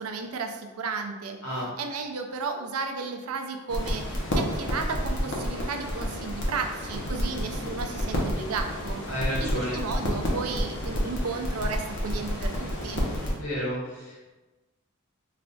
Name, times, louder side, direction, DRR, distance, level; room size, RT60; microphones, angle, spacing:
voice 1, 0.0-1.4 1.8-9.0 9.4-13.0, right 4 dB, 90° right, 4 dB, 0.5 m, -33 dB
sound 1, 3.7-13.3, equal, 55° left, 0.7 m, -30 dB
voice 2, 9.1-9.8 13.4-14.3, equal, 80° left, -5 dB, 1.4 m, -31 dB
3.3 x 2.4 x 3.9 m, 1.1 s
head